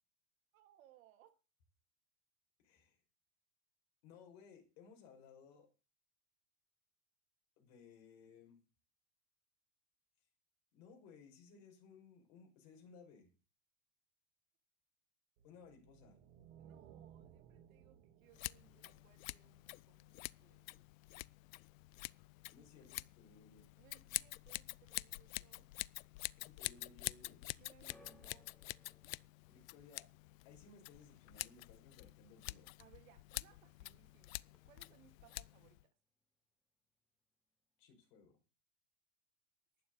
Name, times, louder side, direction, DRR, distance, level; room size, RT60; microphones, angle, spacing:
voice 1, 0.5-1.4 16.6-20.9 23.8-25.7 27.6-28.5 32.8-36.0, right 12 dB, 80° right, 2.6 m, -67 dB
voice 2, 2.6-3.0 4.0-5.7 7.6-8.6 10.7-13.3 15.4-16.2 22.5-23.7 26.4-27.5 29.5-30.1 30.4-32.7 37.8-38.4, left 5 dB, 50° left, 5.3 m, -60 dB
sound 1, 15.4-19.8, right 9 dB, 65° right, 2.0 m, -61 dB
Scissors, 18.3-35.8, left 20 dB, 80° left, 0.6 m, -47 dB
sound 2, 27.9-34.2 34.4-35.1 35.8-35.9, left 2 dB, ahead, 0.7 m, -71 dB
11.5 x 9.4 x 7.9 m
supercardioid pair, 180°, 39 cm